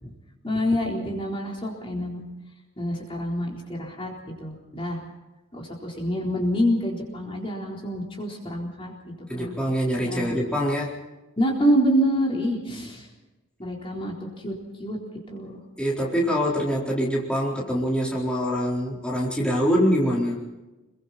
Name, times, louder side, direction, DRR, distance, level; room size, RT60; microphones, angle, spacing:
voice 1, 0.4-2.2 2.8-4.1 4.4-5.0 5.5-9.5 10.0-10.3 11.4-13.1 13.6-14.5 14.8-15.0 15.3-15.6, equal, 25° left, -1 dB, 4.0 m, -27 dB
voice 2, 9.3-11.0 12.7-12.9 15.8-20.4, equal, 5° left, -5 dB, 4.3 m, -24 dB
29.5 x 23.0 x 4.3 m, 1.1 s
head